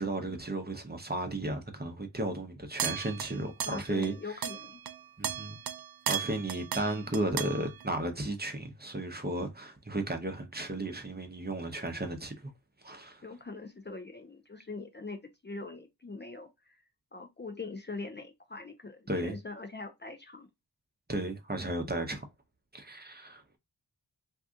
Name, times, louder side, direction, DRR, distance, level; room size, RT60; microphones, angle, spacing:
voice 1, 0.0-4.4 5.2-5.6 6.1-12.5 12.8-13.2 19.1-19.4 21.1-22.2 22.7-23.4, right 2 dB, 25° right, 0.8 m, -34 dB
sound 1, 2.8-4.2 4.4-7.9, right 9 dB, 65° right, 0.5 m, -36 dB
voice 2, 3.6-4.8 6.9-7.2 13.2-16.8 17.1-20.5, left 3 dB, 25° left, 0.5 m, -42 dB
2.7 x 2.3 x 3.6 m
wide cardioid pair, 55°, 40 cm